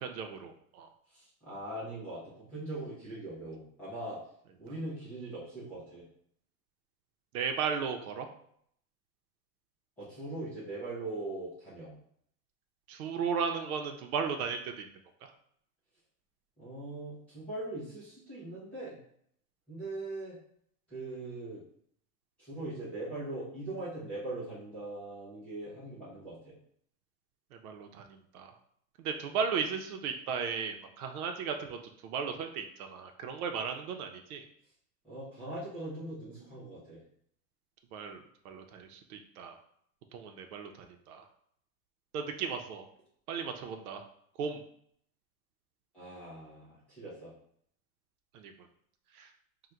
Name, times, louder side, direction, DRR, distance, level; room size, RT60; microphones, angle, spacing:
voice 1, 0.0-0.9 7.3-8.3 12.9-14.9 27.6-28.5 29.0-31.8 32.0-34.4 37.9-39.6 40.1-41.2 42.1-42.8 43.3-44.0 44.4-44.6 48.3-48.5 49.1-49.3, right 6 dB, 90° right, 4 dB, 0.7 m, -35 dB
voice 2, 1.1-4.2 4.6-6.0 10.0-11.9 16.6-19.0 19.7-20.4 20.9-21.6 22.4-26.5 35.0-37.0 45.9-47.3, right 2 dB, 5° left, -11 dB, 0.4 m, -41 dB
3.8 x 2.2 x 4.3 m, 0.67 s
supercardioid pair, 175°, 43 cm